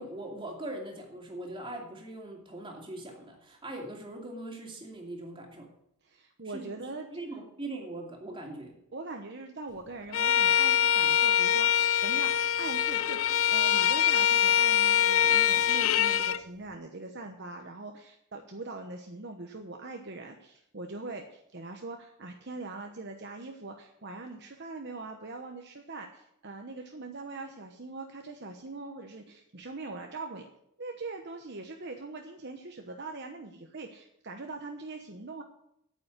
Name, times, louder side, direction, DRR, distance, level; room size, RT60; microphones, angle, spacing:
voice 1, 0.0-5.7 6.5-6.7 7.1-8.7, right 1 dB, 25° right, 0 dB, 2.6 m, -41 dB
voice 2, 6.0-7.1 8.9-13.2 13.5-30.5 30.8-35.4, right 3 dB, 50° right, 3 dB, 1.0 m, -42 dB
Bowed string instrument, 10.1-16.4, left 9 dB, 75° left, 0.5 m, -24 dB
9.2 x 8.4 x 8.3 m, 0.76 s
head